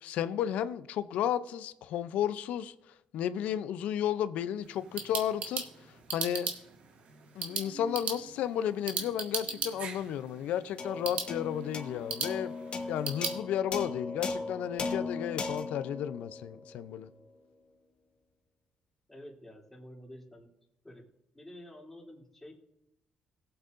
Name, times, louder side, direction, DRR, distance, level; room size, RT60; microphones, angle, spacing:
voice 1, 0.0-2.7 3.1-5.7 6.1-6.5 7.4-12.5 12.9-17.1, left 10 dB, 80° left, 0.5 m, -33 dB
sound 1, 4.6-13.4, right 6 dB, 70° right, 1.5 m, -38 dB
sound 2, 10.8-17.4, left 3 dB, 50° left, 1.4 m, -38 dB
voice 2, 19.1-20.5 20.8-21.0 21.3-22.5, left 1 dB, 10° left, 2.9 m, -49 dB
18.0 x 8.0 x 2.6 m
cardioid pair, 80°, 2 cm